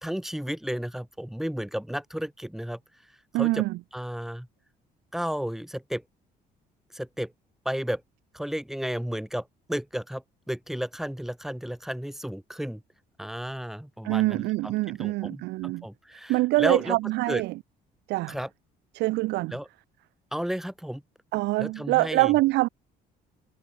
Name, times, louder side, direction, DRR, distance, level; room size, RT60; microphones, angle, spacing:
voice 1, 0.0-2.8 3.3-3.6 3.9-4.5 5.1-6.0 6.9-7.3 7.6-8.0 8.3-12.8 13.2-14.7 15.0-17.0 17.3-17.4 18.3-18.5 19.5-19.7 20.3-21.0 21.6-22.3, equal, ahead, 4.9 m, -33 dB
voice 2, 3.3-3.8 14.0-15.8 16.3-17.5 18.1-18.4 18.9-19.6 21.3-22.7, right 20 dB, 90° right, 4.9 m, -25 dB
cardioid pair, 110°, 17 cm